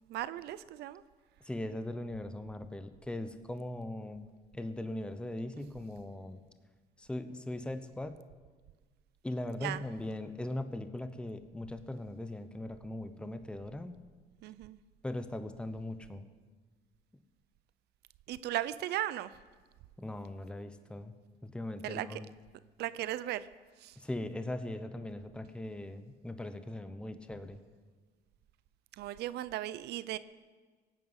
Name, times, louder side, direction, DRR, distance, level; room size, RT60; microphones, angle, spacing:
voice 1, 0.1-1.0 9.6-9.8 14.4-14.8 18.3-19.3 21.8-22.2 22.8-23.5 23.8-23.9 29.0-30.2, right 14 dB, 75° right, 16 dB, 0.6 m, -36 dB
voice 2, 1.4-4.3 4.5-6.4 7.0-8.2 9.2-14.0 15.0-16.3 20.0-21.1 21.4-22.3 24.0-27.6, left 1 dB, 5° left, 10 dB, 0.9 m, -40 dB
17.5 x 9.4 x 8.0 m, 1.4 s
cardioid pair, 110°, 17 cm